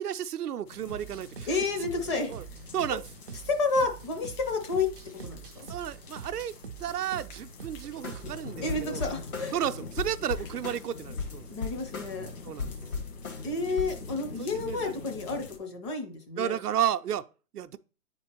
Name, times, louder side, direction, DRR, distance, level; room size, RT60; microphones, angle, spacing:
voice 1, 0.0-1.6 2.3-2.4 2.7-3.0 5.7-6.5 6.8-9.1 9.5-11.4 12.4-12.7 14.4-15.0 16.4-17.3 17.5-17.8, right 10 dB, 80° right, 0.6 m, -32 dB
sound 1, 0.6-15.6, left 3 dB, 55° left, 1.6 m, -45 dB
sound 2, 0.9-8.6, right 7 dB, 40° right, 0.4 m, -45 dB
voice 2, 1.5-2.3 3.5-4.9 5.2-5.7 8.6-9.6 11.5-12.3 13.4-16.6, left 3 dB, 20° left, 0.6 m, -30 dB
sound 3, 8.0-8.4 8.7-9.7 10.0-12.3 12.6-14.0, left 4 dB, 70° left, 2.5 m, -36 dB
9.4 x 4.4 x 2.9 m
hypercardioid pair, 135°, 45 cm